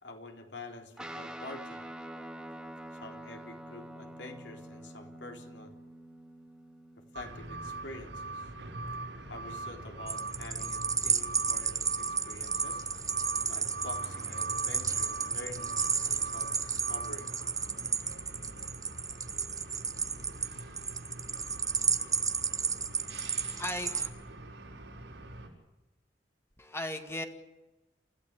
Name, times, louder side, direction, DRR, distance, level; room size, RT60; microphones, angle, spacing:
voice 1, 0.0-1.9 2.9-5.8 7.1-8.5 9.3-12.9 13.5-17.3, left 2 dB, 70° left, 3 dB, 4.0 m, -47 dB
Guitar, 1.0-9.7, right 1 dB, 5° right, 2.3 m, -47 dB
sound 1, 7.1-25.5, right 2 dB, 80° right, 6.0 m, -42 dB
sound 2, 10.1-24.1, right 6 dB, 20° right, 1.0 m, -32 dB
voice 2, 23.1-24.1 26.6-27.2, left 1 dB, 15° left, 5 dB, 2.1 m, -38 dB
29.0 x 15.5 x 8.4 m, 1.0 s
head